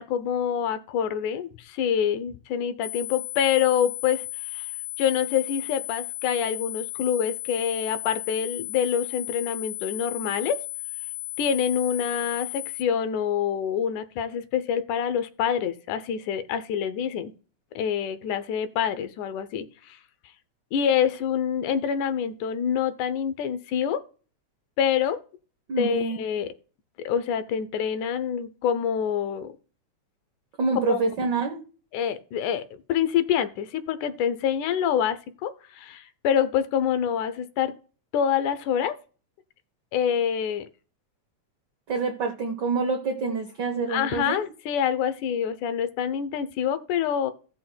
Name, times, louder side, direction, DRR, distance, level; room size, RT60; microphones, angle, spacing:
voice 1, 0.0-4.7 5.0-10.6 11.4-17.3 17.8-20.0 20.7-24.0 24.8-25.2 25.8-26.5 27.0-29.5 30.9-31.0 31.9-37.7 38.1-39.0 39.9-40.7 43.9-47.3, left 8 dB, 85° left, 12 dB, 2.2 m, -26 dB
sound 1, 2.8-12.8, left 35 dB, 65° left, 3.1 m, -35 dB
voice 2, 25.7-26.2 30.6-31.6 41.9-44.5, right 4 dB, 90° right, 4 dB, 0.9 m, -26 dB
17.0 x 6.0 x 2.2 m, 0.39 s
omnidirectional pair, 3.4 m